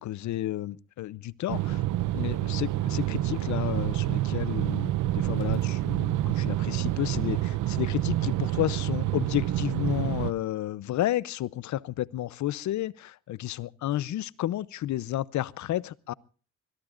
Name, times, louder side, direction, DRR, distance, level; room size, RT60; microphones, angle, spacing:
voice 1, 0.0-1.8 2.1-16.1, left 14 dB, 70° left, 0.7 m, -31 dB
sound 1, 1.5-10.3, right 14 dB, 80° right, 0.7 m, -28 dB
24.5 x 22.0 x 2.5 m
cardioid pair, 90°, 30 cm